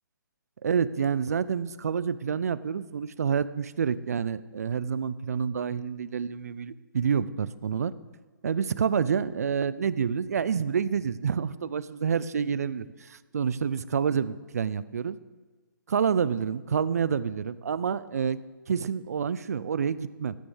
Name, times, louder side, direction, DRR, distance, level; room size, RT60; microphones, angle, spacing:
voice 1, 0.6-7.9 8.4-15.2 15.9-18.4 18.7-20.4, right 7 dB, 45° right, 17 dB, 0.5 m, -28 dB
14.5 x 7.0 x 7.0 m, 1.3 s
hypercardioid pair, 170°, 11 cm